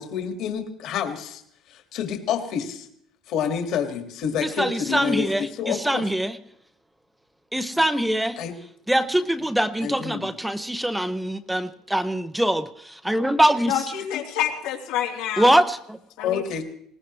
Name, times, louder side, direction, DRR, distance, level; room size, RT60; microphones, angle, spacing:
voice 1, 0.0-1.4 1.7-2.9 3.3-6.0 8.4-8.5 9.8-10.3 16.2-16.6, left 8 dB, 50° left, 2.0 m, -28 dB
voice 2, 4.6-6.4 7.5-8.4 8.9-13.8 15.4-16.0, right 1 dB, 5° right, 0.5 m, -23 dB
voice 3, 13.7-15.6 16.2-16.4, left 10 dB, 90° left, 3.3 m, -27 dB
20.5 x 20.0 x 3.2 m
cardioid pair, 175°, 0 cm